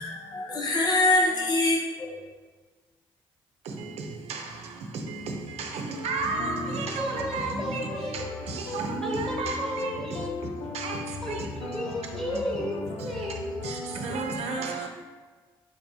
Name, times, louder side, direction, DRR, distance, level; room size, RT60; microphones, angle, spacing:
voice 1, 0.0-2.2, left 2 dB, 40° left, -2 dB, 0.8 m, -24 dB
voice 2, 3.6-11.7 12.3-12.4 13.0-13.3 13.6-14.9, right 3 dB, 75° right, 3 dB, 0.7 m, -33 dB
sound 1, 5.1-14.1, left 3 dB, 80° left, 0.6 m, -38 dB
voice 3, 7.0-8.2 9.0-10.3 11.2-14.9, equal, 5° left, -5 dB, 1.4 m, -34 dB
4.6 x 4.1 x 2.7 m, 1.4 s
supercardioid pair, 50°, 11 cm